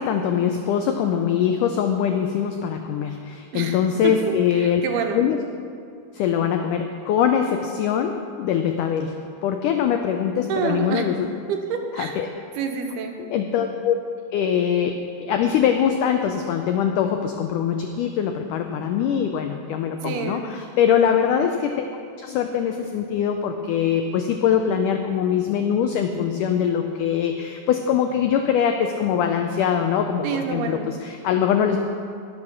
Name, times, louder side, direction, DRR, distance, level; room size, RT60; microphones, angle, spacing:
voice 1, 0.0-4.8 5.1-5.4 6.1-9.2 9.4-11.3 11.9-12.3 13.3-14.0 14.3-21.9 22.2-31.8, left 8 dB, 90° left, 5 dB, 1.8 m, -22 dB
voice 2, 4.5-5.2 10.5-11.0 11.5-12.2 12.6-13.2 20.0-20.5 30.2-30.9, right 6 dB, 85° right, 4 dB, 3.0 m, -27 dB
18.0 x 6.6 x 6.0 m, 2.4 s
omnidirectional pair, 4.4 m